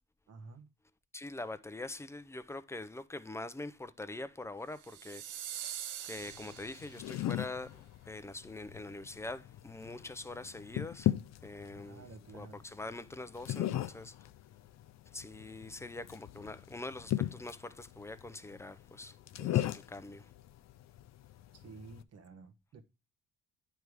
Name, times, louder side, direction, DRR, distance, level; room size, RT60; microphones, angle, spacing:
voice 1, 0.3-0.7 11.7-12.6 21.5-22.8, right 4 dB, 55° right, 1.0 m, -52 dB
voice 2, 1.1-5.4 6.0-11.1 11.4-12.1 12.3-14.2 15.1-20.3, left 2 dB, 10° left, 0.5 m, -44 dB
sound 1, 4.8-7.2, right 10 dB, 75° right, 0.7 m, -44 dB
sound 2, 6.2-22.0, left 13 dB, 60° left, 0.5 m, -38 dB
9.2 x 3.4 x 4.7 m
cardioid pair, 90°, 30 cm